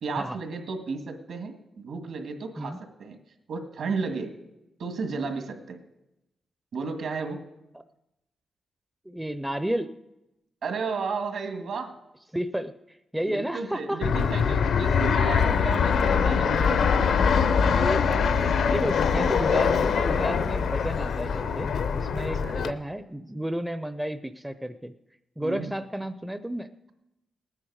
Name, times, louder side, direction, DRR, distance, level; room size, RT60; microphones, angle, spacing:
voice 1, 0.0-3.2 3.5-4.4 4.8-5.8 6.7-7.4 10.6-11.9 13.2-16.9 22.2-22.6 25.4-25.7, right 4 dB, 70° right, 5 dB, 1.8 m, -33 dB
voice 2, 9.1-9.9 12.3-14.0 16.2-16.3 16.6-16.8 17.0-24.9 25.4-26.7, right 1 dB, 5° right, 10 dB, 0.5 m, -32 dB
Fixed-wing aircraft airplane, 14.0-22.7, left 6 dB, 75° left, 0.7 m, -23 dB
19.0 x 9.9 x 4.8 m, 0.94 s
cardioid pair, 120°, 0 cm